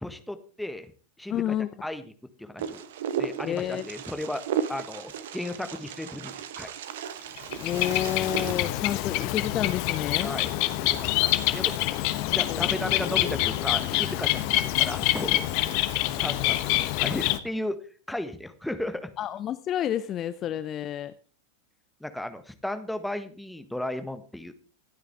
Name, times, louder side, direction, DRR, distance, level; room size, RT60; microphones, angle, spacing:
voice 1, 0.0-0.9 1.2-1.5 1.8-2.0 2.4-2.8 3.2-4.4 4.7-6.7 10.2-10.5 10.9-11.7 12.3-15.5 16.2-17.8 18.1-19.1 22.0-24.5, left 1 dB, 5° left, 9 dB, 1.4 m, -35 dB
voice 2, 1.3-1.7 3.4-3.9 7.6-10.3 11.9-12.0 12.4-12.8 19.2-21.1, left 11 dB, 30° left, 14 dB, 0.6 m, -30 dB
Wind, 2.6-8.6, right 8 dB, 55° right, 1.2 m, -34 dB
Bird, 7.4-17.4, left 15 dB, 45° left, 1.1 m, -26 dB
26.0 x 9.1 x 3.6 m, 0.39 s
figure-of-eight pair, 90°, 0 cm